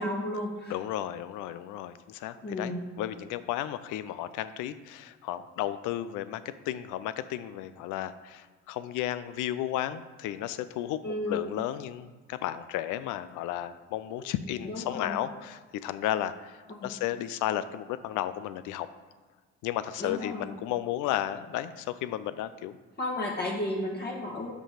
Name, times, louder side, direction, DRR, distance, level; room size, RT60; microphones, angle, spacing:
voice 1, 0.0-0.7 2.4-2.8 11.0-11.5 14.2-14.3 14.6-15.2 16.8-16.9 20.0-20.5 23.0-24.5, left 1 dB, 35° left, -2 dB, 1.3 m, -33 dB
voice 2, 0.7-18.9 19.6-22.7, left 12 dB, 75° left, 13 dB, 0.5 m, -33 dB
5.8 x 5.1 x 4.9 m, 1.4 s
supercardioid pair, 65°, 31 cm